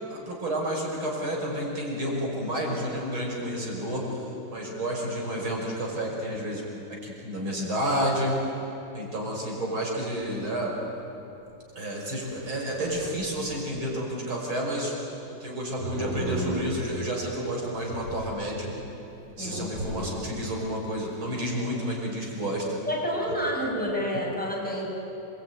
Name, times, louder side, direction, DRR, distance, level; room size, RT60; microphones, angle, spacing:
voice 1, 0.1-6.6 6.9-8.4 8.9-10.7 11.7-14.9 15.3-18.7 19.4-22.7, equal, 85° right, -1 dB, 6.5 m, -30 dB
sound 1, 10.1-10.2 10.5-10.6 11.4-11.5 12.3-13.8 15.8-17.1 17.8-18.6 19.0-19.1 19.4-20.4 20.8-21.3, right 1 dB, 45° right, 5.2 m, -35 dB
voice 2, 22.9-24.9, equal, 5° left, -3 dB, 7.0 m, -29 dB
28.0 x 22.5 x 9.4 m, 2.9 s
omnidirectional pair, 2.2 m